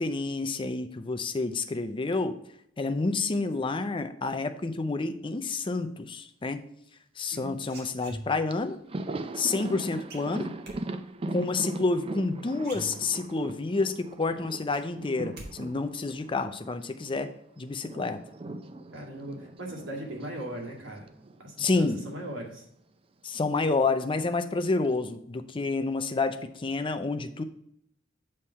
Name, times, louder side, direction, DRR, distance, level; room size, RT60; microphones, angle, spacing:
voice 1, 0.0-2.4 2.8-6.6 7.2-8.8 9.3-10.5 11.3-17.3 17.6-18.2 21.6-22.0 23.2-27.4, left 3 dB, 25° left, 8 dB, 0.5 m, -29 dB
sound 1, 7.3-8.6 10.1-10.8 12.2-12.3 12.6-13.4 13.8-13.9 14.3-15.5 15.8-16.2, right 1 dB, 55° right, 1.7 m, -44 dB
voice 2, 7.3-7.6 18.9-21.1 21.4-22.7, right 1 dB, 80° right, -1 dB, 2.2 m, -39 dB
Thunder, 8.1-8.2 8.5-17.3 17.6-21.9 22.1-22.3 23.5-24.2, right 2 dB, 30° right, 0.4 m, -40 dB
7.2 x 3.2 x 5.5 m, 0.73 s
head